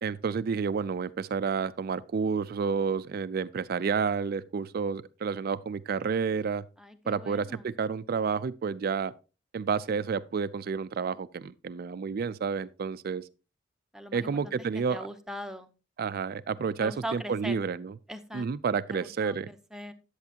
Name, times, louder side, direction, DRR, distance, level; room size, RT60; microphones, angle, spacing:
voice 1, 0.0-6.6 7.1-9.1 9.5-13.2 14.1-15.0 16.0-17.9 18.3-19.5, right 5 dB, 55° right, 0.4 m, -30 dB
voice 2, 6.8-7.6 13.9-15.7 16.8-17.6 18.1-19.9, equal, 5° right, 0.7 m, -41 dB
10.5 x 7.9 x 2.8 m
head